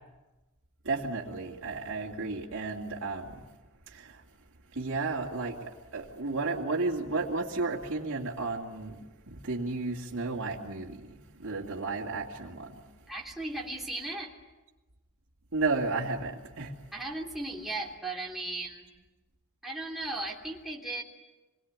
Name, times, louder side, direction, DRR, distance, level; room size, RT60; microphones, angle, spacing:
voice 1, 0.8-3.3 3.9-4.2 4.8-9.0 9.3-12.8 15.5-16.7, right 3 dB, 60° right, -2 dB, 2.6 m, -33 dB
voice 2, 13.1-14.3 16.9-18.9 19.6-21.0, right 2 dB, ahead, -2 dB, 3.1 m, -36 dB
27.5 x 22.0 x 9.7 m, 1.1 s
head